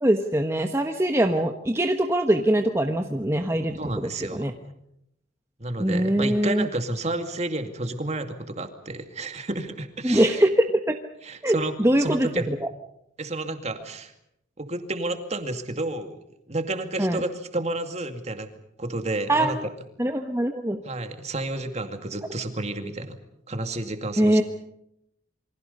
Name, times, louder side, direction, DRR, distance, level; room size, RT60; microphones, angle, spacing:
voice 1, 0.0-4.5 5.8-6.7 10.0-11.0 11.4-12.6 17.0-17.2 19.3-19.7 20.0-20.8 24.2-24.4, right 1 dB, 15° right, 4 dB, 1.2 m, -23 dB
voice 2, 3.8-4.5 5.6-10.4 11.2-11.7 12.0-12.5 13.2-14.1 14.6-16.2 16.5-18.5 18.8-19.6 20.8-23.2 23.5-24.4, right 2 dB, 35° right, 7 dB, 2.3 m, -31 dB
28.5 x 24.5 x 5.5 m, 0.77 s
head